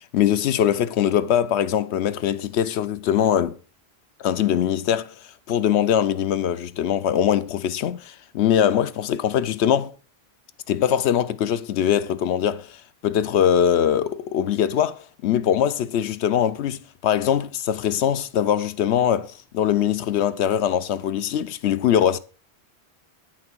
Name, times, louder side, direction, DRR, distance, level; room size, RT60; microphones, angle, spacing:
voice 1, 0.0-3.6 4.2-5.1 5.5-9.9 10.7-22.2, left 9 dB, 90° left, 0.9 m, -22 dB
9.6 x 6.0 x 4.5 m
omnidirectional pair, 1.1 m